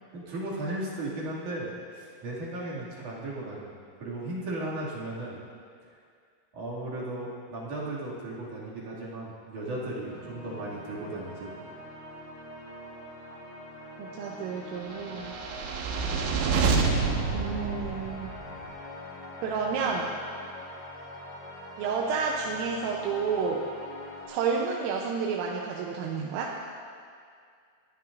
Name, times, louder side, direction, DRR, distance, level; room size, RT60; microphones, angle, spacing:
voice 1, 0.1-3.7 4.0-5.4 6.5-11.5, right 1 dB, 45° right, -7 dB, 3.6 m, -36 dB
sound 1, 10.0-24.2, left 1 dB, 50° left, 5.5 m, -43 dB
voice 2, 14.0-15.4 17.3-18.3 19.4-20.1 21.8-23.6 24.3-26.6, right 5 dB, 90° right, -2 dB, 3.6 m, -30 dB
sound 2, 15.1-18.5, right 4 dB, 75° right, 3.0 m, -27 dB
22.5 x 15.0 x 2.7 m, 2.2 s
omnidirectional pair, 5.7 m